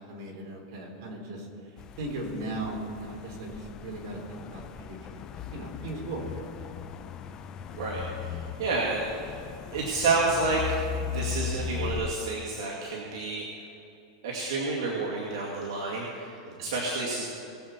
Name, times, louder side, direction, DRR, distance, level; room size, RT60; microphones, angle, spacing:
voice 1, 0.0-4.6 4.9-6.4 16.4-16.7, right 2 dB, 55° right, -1 dB, 3.4 m, -38 dB
sound 1, 1.8-12.1, left 8 dB, 25° left, 0.6 m, -38 dB
voice 2, 7.7-9.3 9.7-10.6 11.1-13.4 14.2-16.3 16.6-17.3, right 3 dB, 75° right, -4 dB, 2.2 m, -29 dB
20.0 x 7.4 x 4.4 m, 2.8 s
supercardioid pair, 155°, 2 cm